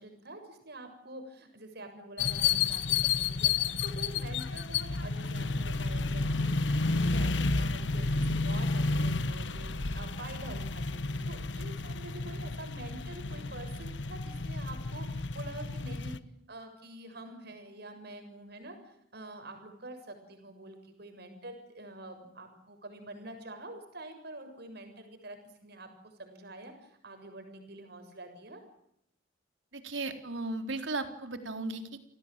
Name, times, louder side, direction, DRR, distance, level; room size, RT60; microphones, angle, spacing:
voice 1, 0.0-16.2 16.5-25.9 26.2-28.6, right 1 dB, 60° right, 6 dB, 7.2 m, -47 dB
sound 1, 2.2-16.2, left 4 dB, 70° left, 1.3 m, -31 dB
voice 2, 29.7-32.0, right 2 dB, 80° right, 8 dB, 3.9 m, -36 dB
30.0 x 19.0 x 9.1 m, 0.75 s
head